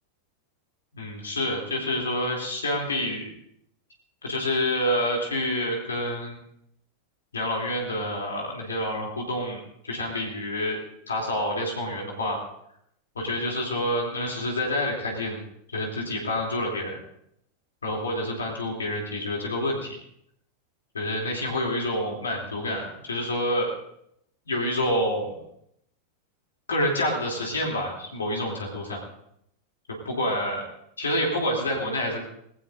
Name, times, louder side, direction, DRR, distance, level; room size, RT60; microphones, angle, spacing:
voice 1, 0.9-3.3 4.2-6.4 7.3-10.8 11.1-12.4 13.1-15.4 15.7-17.0 17.8-20.0 20.9-23.7 24.5-25.3 26.7-29.1 30.0-30.7 31.0-32.2, left 1 dB, 70° left, -1 dB, 3.0 m, -28 dB
19.5 x 17.5 x 2.6 m, 0.74 s
figure-of-eight pair, 90°, 0 cm